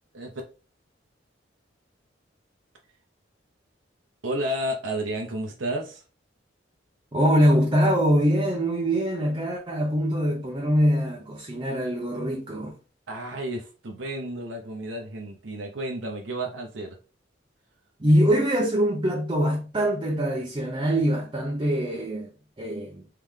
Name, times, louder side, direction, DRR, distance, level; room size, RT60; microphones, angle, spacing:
voice 1, 4.2-6.0 13.1-17.0, right 1 dB, 75° right, 0.7 m, -31 dB
voice 2, 7.1-12.7 18.0-22.3 22.6-23.0, equal, 25° right, 0.6 m, -23 dB
3.6 x 3.3 x 3.2 m
head